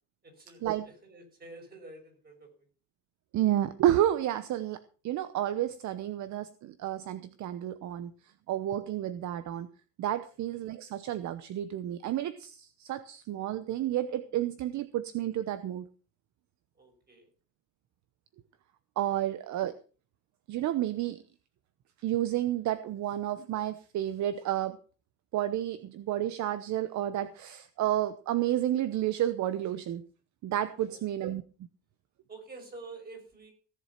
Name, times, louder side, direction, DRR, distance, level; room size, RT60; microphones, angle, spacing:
voice 1, 0.2-2.7 16.7-17.3 30.8-31.0 32.3-33.5, right 3 dB, 25° right, 3 dB, 6.1 m, -48 dB
voice 2, 3.3-8.1 8.5-9.7 10.0-15.9 19.0-19.7 20.5-21.2 22.0-24.8 25.3-30.0 30.4-31.4, right 12 dB, 55° right, 13 dB, 1.0 m, -31 dB
17.0 x 7.6 x 5.7 m, 0.39 s
cardioid pair, 130°, 35 cm